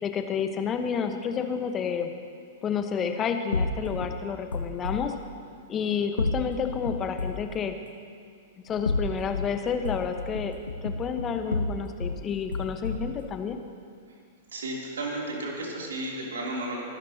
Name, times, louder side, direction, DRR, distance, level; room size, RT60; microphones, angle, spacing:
voice 1, 0.0-2.1 2.6-5.1 5.7-7.7 8.6-10.6 10.8-13.6, left 7 dB, 25° left, 6 dB, 1.1 m, -30 dB
sound 1, 3.5-5.0 6.2-7.5 8.7-9.5 9.8-12.2 12.5-13.2, left 2 dB, 80° left, 0.7 m, -31 dB
voice 2, 14.5-16.8, right 1 dB, 70° right, -2 dB, 3.0 m, -33 dB
24.5 x 12.0 x 2.9 m, 2.3 s
figure-of-eight pair, 100°, 0 cm